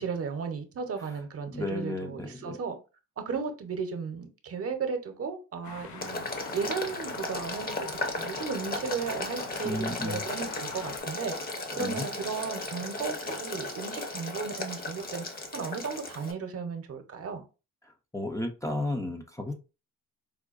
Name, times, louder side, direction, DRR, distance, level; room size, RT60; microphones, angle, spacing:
voice 1, 0.0-2.7 3.2-6.2 6.5-11.3 11.7-15.2 15.5-17.4, right 5 dB, 50° right, 0.8 m, -35 dB
voice 2, 1.5-2.6 9.6-10.2 11.8-12.1 17.8-19.5, left 1 dB, 10° left, 0.5 m, -34 dB
sound 1, 5.6-11.0, left 6 dB, 75° left, 0.6 m, -44 dB
Boiling, 6.0-16.3, left 2 dB, 30° left, 0.8 m, -36 dB
4.7 x 2.2 x 2.4 m
cardioid pair, 90°, 30 cm